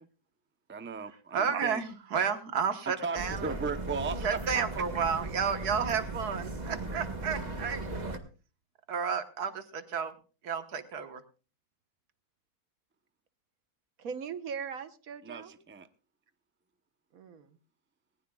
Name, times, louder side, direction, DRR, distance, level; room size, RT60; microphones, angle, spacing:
voice 1, 0.7-1.8 3.0-4.3 4.5-4.7 15.2-15.9, right 4 dB, 10° right, 0.6 m, -36 dB
voice 2, 1.3-3.5 4.2-7.9 8.9-10.1 10.4-11.2, right 6 dB, 90° right, 1.9 m, -31 dB
sound 1, 3.1-8.2, right 2 dB, 30° right, 1.5 m, -37 dB
voice 3, 14.0-15.5 17.1-17.6, right 6 dB, 65° right, 1.6 m, -39 dB
19.5 x 19.0 x 2.4 m
omnidirectional pair, 1.6 m